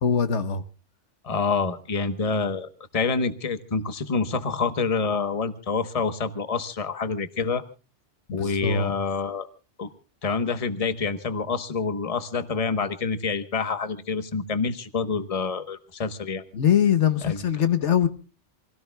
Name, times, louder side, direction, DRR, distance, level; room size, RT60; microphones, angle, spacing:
voice 1, 0.0-0.6 8.3-8.9 16.5-18.1, left 8 dB, 75° left, 1.4 m, -22 dB
voice 2, 1.2-7.6 8.3-9.5 9.8-9.9 10.2-16.4 17.2-17.4, left 4 dB, 30° left, 1.2 m, -27 dB
27.5 x 17.5 x 2.3 m
omnidirectional pair, 1.2 m